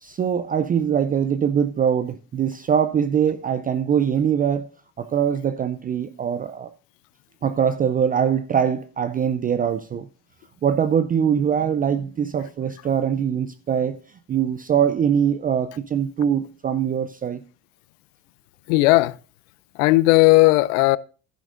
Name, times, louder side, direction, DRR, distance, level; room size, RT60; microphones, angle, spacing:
voice 1, 0.0-4.7 5.0-6.7 7.4-10.1 10.6-14.0 14.3-17.4, right 8 dB, 25° right, 0.5 m, -22 dB
voice 2, 18.7-19.1 19.8-21.0, left 21 dB, 80° left, 0.6 m, -16 dB
11.0 x 10.5 x 2.5 m
supercardioid pair, 105°, 38 cm